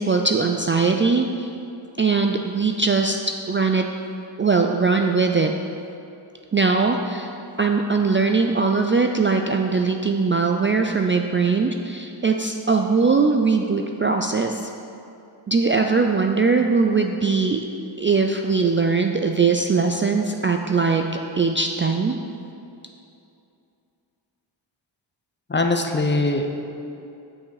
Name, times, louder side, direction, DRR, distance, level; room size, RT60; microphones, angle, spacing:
voice 1, 0.0-1.5 2.0-3.8 4.4-5.5 6.5-7.3 7.6-14.7 15.5-17.6 18.0-21.0 21.4-22.2, right 4 dB, 30° right, 3 dB, 0.3 m, -20 dB
voice 2, 25.5-26.5, left 2 dB, 25° left, 4 dB, 0.7 m, -21 dB
9.2 x 5.8 x 4.8 m, 2.7 s
wide cardioid pair, 85°, 45 cm